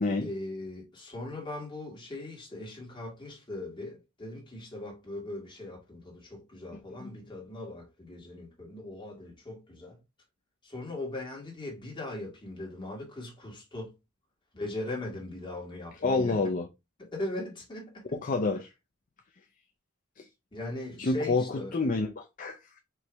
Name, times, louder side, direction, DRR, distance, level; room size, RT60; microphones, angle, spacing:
voice 1, 0.2-10.0 10.6-13.9 14.5-16.4 17.0-18.2 20.5-21.8, left 2 dB, 20° left, 1.9 m, -39 dB
voice 2, 16.0-16.7 18.1-18.7 20.2-20.3 21.0-22.8, left 3 dB, 40° left, 0.5 m, -28 dB
4.6 x 3.1 x 3.4 m
head